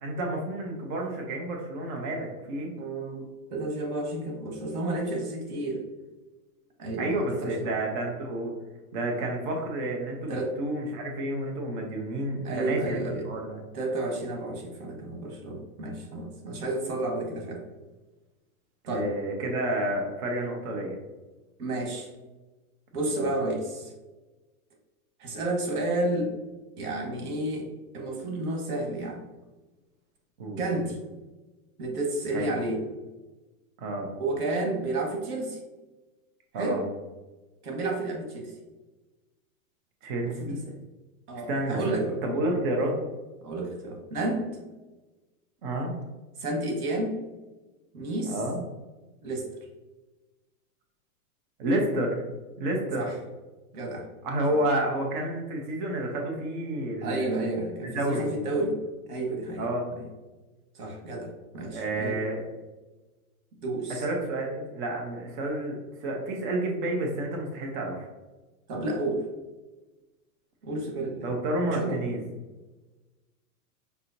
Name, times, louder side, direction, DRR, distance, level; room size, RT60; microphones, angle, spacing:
voice 1, 0.0-2.7 7.0-8.5 8.9-13.6 18.9-21.0 23.1-23.3 30.4-30.6 32.3-32.6 33.8-34.1 36.5-36.8 40.0-40.6 41.5-43.0 45.6-46.0 48.3-48.6 51.6-52.2 52.6-53.1 54.2-57.4 57.8-58.3 59.6-59.9 61.7-62.4 64.0-68.1 71.2-72.2, right 1 dB, 35° right, 1 dB, 0.7 m, -30 dB
voice 2, 2.8-5.8 6.8-7.8 10.3-10.5 12.4-13.3 13.7-17.6 18.9-19.1 21.6-22.1 22.9-23.9 25.2-26.3 26.8-27.7 27.9-29.2 30.6-31.0 31.8-32.8 34.2-35.6 36.5-36.8 37.6-38.5 40.2-40.8 41.3-42.2 43.4-44.6 46.4-47.2 47.9-48.4 49.2-49.5 53.0-53.1 53.7-54.1 54.5-54.6 57.0-58.8 59.1-59.7 60.0-60.1 60.7-62.2 63.6-64.0 68.7-69.2 70.6-71.3 71.7-72.1, right 2 dB, 85° right, 1 dB, 1.4 m, -31 dB
5.5 x 2.8 x 2.6 m, 1.2 s
supercardioid pair, 155°, 44 cm